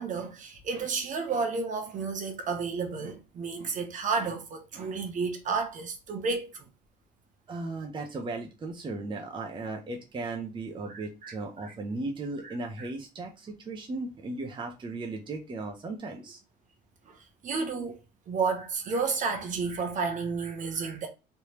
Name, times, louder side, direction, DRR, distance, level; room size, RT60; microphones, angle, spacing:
voice 1, 0.0-6.7 10.9-11.7 12.4-12.9 17.1-17.2 17.4-18.0 18.3-21.1, right 4 dB, 50° right, 0.9 m, -32 dB
voice 2, 7.5-16.4, right 3 dB, 30° right, 0.6 m, -36 dB
3.3 x 3.0 x 2.9 m
cardioid pair, 110°, 17 cm